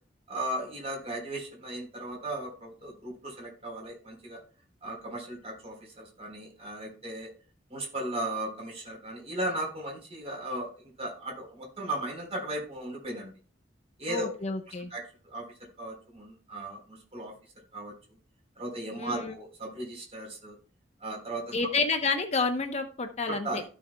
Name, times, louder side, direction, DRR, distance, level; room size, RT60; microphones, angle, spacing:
voice 1, 0.3-4.4 4.8-7.3 7.7-10.7 11.0-13.3 14.0-14.3 14.9-15.5 15.8-17.3 17.7-17.9 18.6-20.6 21.0-21.5 23.3-23.6, right 1 dB, 35° right, -1 dB, 3.9 m, -36 dB
voice 2, 14.1-14.9 19.0-19.3 21.5-23.6, left 3 dB, 40° left, 6 dB, 0.9 m, -29 dB
15.5 x 5.5 x 2.2 m, 0.38 s
head